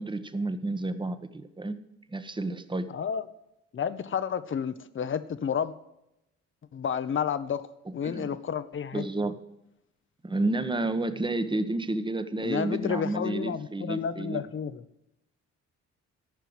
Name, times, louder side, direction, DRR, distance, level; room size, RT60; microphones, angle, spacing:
voice 1, 0.0-1.8 2.1-2.9 7.9-8.4 8.9-9.4 10.2-14.4, right 2 dB, 15° right, 10 dB, 1.1 m, -30 dB
voice 2, 2.9-3.2 3.7-5.7 6.7-7.6 7.9-9.0 12.4-14.8, left 7 dB, 40° left, 13 dB, 0.9 m, -31 dB
14.0 x 5.6 x 7.8 m, 0.84 s
cardioid pair, 90°, 30 cm